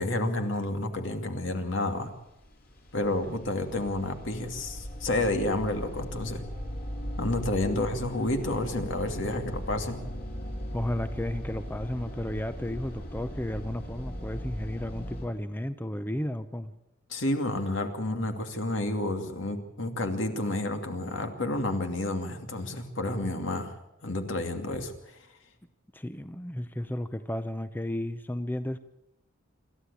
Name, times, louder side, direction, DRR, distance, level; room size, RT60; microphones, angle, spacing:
voice 1, 0.0-2.1 2.9-6.4 7.2-10.0 17.1-23.7 24.0-24.9, left 1 dB, 70° left, 5 dB, 2.6 m, -30 dB
sound 1, 2.1-15.3, equal, 55° left, 5.2 m, -38 dB
voice 2, 10.7-16.7 25.9-28.8, left 1 dB, 10° left, 11 dB, 0.7 m, -33 dB
27.0 x 13.0 x 8.5 m, 0.87 s
head